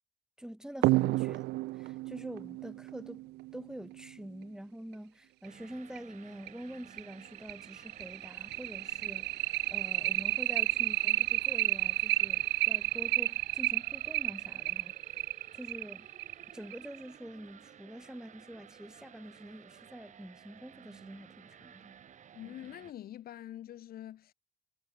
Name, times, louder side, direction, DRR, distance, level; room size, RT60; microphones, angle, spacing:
voice 1, 0.4-15.2 15.5-16.1 16.5-21.9 22.5-22.6, right 1 dB, 5° right, 3.5 m, -46 dB
sound 1, 0.8-4.0 5.4-5.5 6.0-6.1 6.5-6.6 7.0-17.0, right 20 dB, 80° right, 0.6 m, -31 dB
sound 2, 5.4-22.9, right 8 dB, 45° right, 2.7 m, -55 dB
voice 2, 22.3-24.3, left 12 dB, 65° left, 5.2 m, -45 dB
cardioid pair, 110°, 17 cm